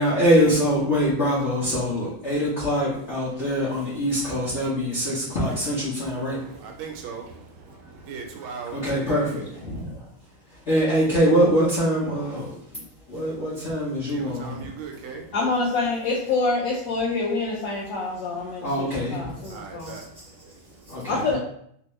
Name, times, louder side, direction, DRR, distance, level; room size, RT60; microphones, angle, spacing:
voice 1, 0.0-6.4 7.7-7.8 8.7-10.1 10.5-12.8 13.1-14.6 18.6-20.0 20.8-21.4, equal, 50° left, 0.8 m, -24 dB
voice 2, 6.1-9.8 13.8-15.4 19.2-21.1, right 5 dB, 75° right, 1.4 m, -40 dB
voice 3, 15.3-20.0 21.1-21.4, left 3 dB, 70° left, 1.1 m, -26 dB
3.4 x 2.6 x 3.0 m
omnidirectional pair, 2.4 m